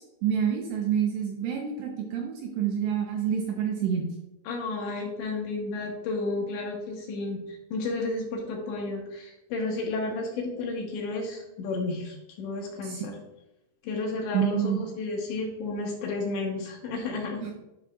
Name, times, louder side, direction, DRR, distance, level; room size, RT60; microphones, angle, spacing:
voice 1, 0.2-4.1 12.8-13.1 14.3-14.9 17.4-17.5, right 8 dB, 80° right, 0 dB, 2.7 m, -28 dB
voice 2, 4.5-13.2 13.8-17.5, left 3 dB, 75° left, 0 dB, 3.0 m, -32 dB
11.0 x 5.5 x 2.4 m, 0.94 s
omnidirectional pair, 5.7 m